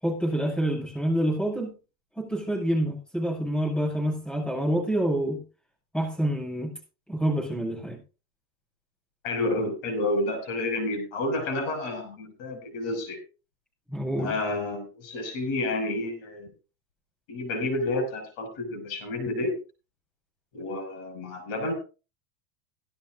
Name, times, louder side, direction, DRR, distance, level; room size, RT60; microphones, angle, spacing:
voice 1, 0.0-1.7 2.2-5.4 5.9-6.7 7.1-8.0 13.9-14.3, right 1 dB, ahead, -2 dB, 6.2 m, -27 dB
voice 2, 9.2-13.2 14.2-16.5 17.3-19.6 20.5-21.7, left 2 dB, 55° left, 8 dB, 6.2 m, -30 dB
18.0 x 13.0 x 2.5 m, 0.34 s
supercardioid pair, 165°, 44 cm